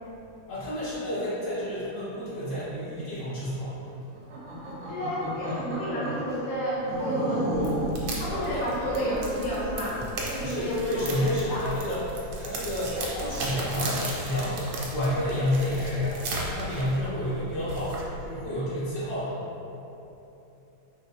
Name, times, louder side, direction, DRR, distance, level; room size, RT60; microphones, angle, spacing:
voice 1, 0.5-3.8 8.3-8.6 10.4-12.0 12.4-19.4, left 1 dB, 50° left, -12 dB, 2.1 m, -30 dB
sound 1, 4.2-6.3 6.8-8.0 8.5-9.9, right 1 dB, 60° right, 0.8 m, -33 dB
voice 2, 4.9-7.8 8.2-11.7, equal, 75° left, -8 dB, 1.8 m, -31 dB
sound 2, 7.5-18.3, right 2 dB, 85° right, 1.6 m, -36 dB
5.0 x 3.2 x 2.8 m, 3.0 s
omnidirectional pair, 2.2 m